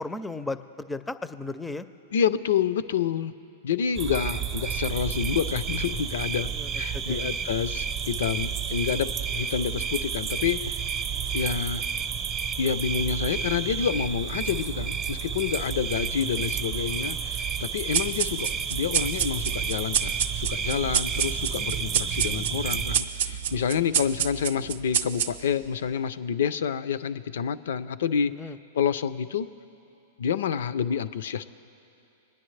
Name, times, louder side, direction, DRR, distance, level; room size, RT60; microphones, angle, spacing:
voice 1, 0.0-1.9 6.5-7.2 28.4-28.6, left 2 dB, 10° left, 13 dB, 0.4 m, -35 dB
voice 2, 2.1-3.3 3.6-10.8 11.3-11.8 12.6-29.5 30.2-31.5, left 7 dB, 75° left, 14 dB, 0.4 m, -28 dB
sound 1, 3.9-23.0, right 7 dB, 35° right, 0.7 m, -31 dB
sound 2, 17.9-25.7, right 9 dB, 70° right, 0.5 m, -29 dB
21.5 x 9.8 x 3.2 m, 2.8 s
hypercardioid pair, 120°, 0 cm